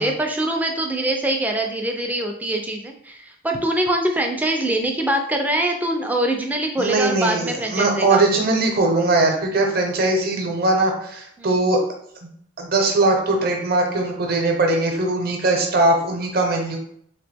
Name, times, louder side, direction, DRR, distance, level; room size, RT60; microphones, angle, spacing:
voice 1, 0.0-8.2 11.4-11.5, right 1 dB, 10° right, 3 dB, 0.4 m, -23 dB
voice 2, 6.8-11.8 12.6-16.8, right 2 dB, 50° right, 2 dB, 0.7 m, -20 dB
3.5 x 3.0 x 3.4 m, 0.67 s
head